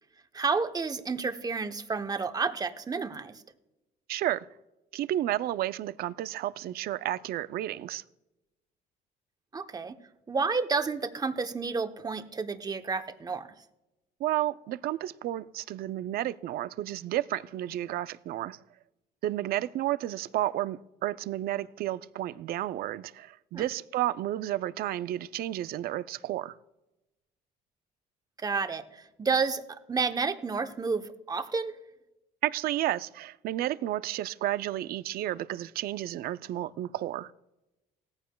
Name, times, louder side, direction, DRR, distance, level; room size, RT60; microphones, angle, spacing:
voice 1, 0.3-3.3 9.5-10.0 10.3-13.5 23.5-23.6 28.4-29.6 29.9-31.7, right 4 dB, 20° right, 0.8 m, -30 dB
voice 2, 4.1-4.5 4.9-8.0 14.2-18.6 19.2-26.6 32.4-37.3, right 14 dB, 65° right, 0.4 m, -32 dB
17.5 x 14.5 x 2.2 m
cardioid pair, 110°, 17 cm